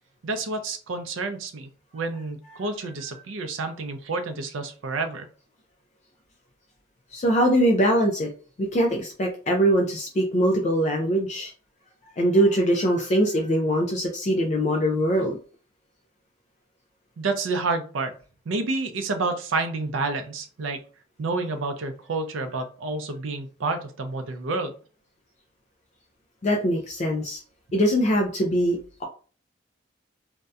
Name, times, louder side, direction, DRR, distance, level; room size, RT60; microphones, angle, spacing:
voice 1, 0.2-5.3 17.2-18.1 18.5-20.8 21.2-24.7, right 3 dB, 90° right, 7 dB, 0.5 m, -29 dB
voice 2, 7.1-8.3 8.6-11.5 12.2-15.4 26.4-27.4 27.7-29.0, equal, 35° left, 2 dB, 0.3 m, -22 dB
2.6 x 2.1 x 2.3 m, 0.38 s
head